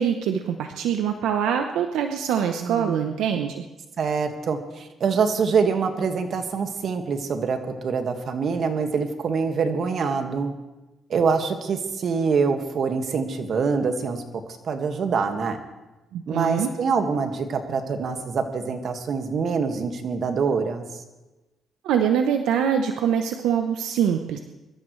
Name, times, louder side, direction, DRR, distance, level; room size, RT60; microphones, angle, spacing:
voice 1, 0.0-3.6 16.1-16.7 21.8-24.4, right 8 dB, 90° right, 5 dB, 0.8 m, -24 dB
voice 2, 2.6-3.1 4.0-10.5 11.1-15.6 16.3-21.0, right 5 dB, 60° right, 5 dB, 1.8 m, -25 dB
24.0 x 13.5 x 3.2 m, 1.1 s
cardioid pair, 90°, 0 cm